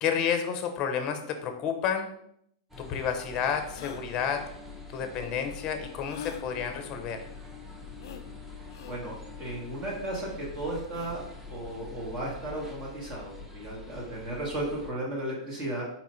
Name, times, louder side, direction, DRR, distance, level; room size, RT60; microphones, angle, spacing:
voice 1, 0.0-2.1 2.8-4.4 4.9-7.2, left 7 dB, 35° left, 6 dB, 0.6 m, -30 dB
sound 1, 2.7-2.8 3.7-4.1 6.1-6.5 8.0-8.2 8.7-9.0 10.8-11.2, left 8 dB, 70° left, 0.3 m, -43 dB
sound 2, 2.7-14.9, left 4 dB, 5° right, 0.7 m, -45 dB
voice 2, 8.9-11.2 11.5-16.0, right 1 dB, 30° right, -3 dB, 1.2 m, -35 dB
4.3 x 2.4 x 4.2 m, 0.72 s
hypercardioid pair, 130°, 2 cm